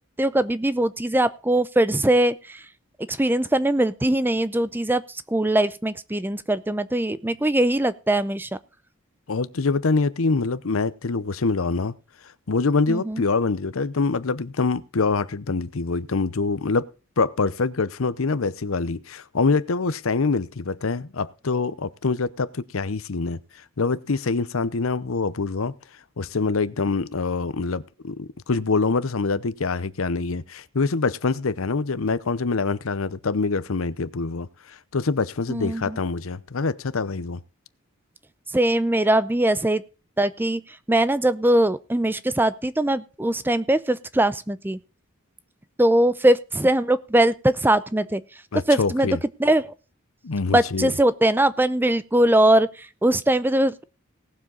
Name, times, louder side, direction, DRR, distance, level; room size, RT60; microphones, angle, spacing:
voice 1, 0.2-2.6 3.1-5.0 5.3-8.5 12.9-13.2 35.5-36.0 38.5-39.8 40.2-40.6 40.9-44.8 45.8-48.2 48.7-49.1 49.4-49.7 50.5-53.8, right 1 dB, 10° right, 0.5 m, -21 dB
voice 2, 9.3-11.9 12.5-16.9 17.2-23.4 23.8-25.7 26.2-37.4 48.5-49.2 50.2-50.9, left 4 dB, 85° left, 0.8 m, -25 dB
18.5 x 7.4 x 3.9 m
head